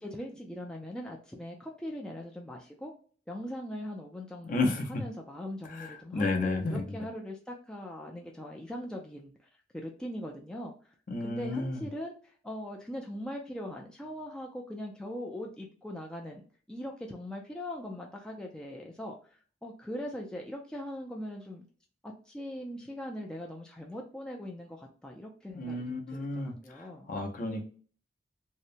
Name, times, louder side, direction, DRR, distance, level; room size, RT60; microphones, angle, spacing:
voice 1, 0.0-2.9 3.3-9.3 9.7-10.7 11.2-21.6 22.0-27.1, left 1 dB, 5° left, -1 dB, 0.3 m, -41 dB
voice 2, 4.4-5.0 5.7-7.0 11.1-11.8 25.5-27.7, left 2 dB, 45° left, 3 dB, 0.6 m, -32 dB
2.8 x 2.1 x 2.5 m, 0.42 s
head